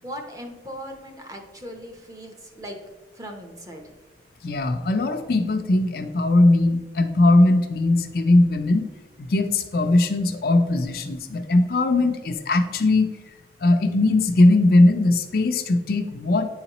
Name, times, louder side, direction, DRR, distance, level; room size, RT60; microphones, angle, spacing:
voice 1, 0.0-2.8 3.1-3.9, equal, 20° right, 3 dB, 0.7 m, -38 dB
voice 2, 4.4-8.8 9.2-13.1 13.6-16.5, left 2 dB, 55° left, 6 dB, 0.5 m, -19 dB
9.5 x 4.0 x 3.0 m, 1.3 s
head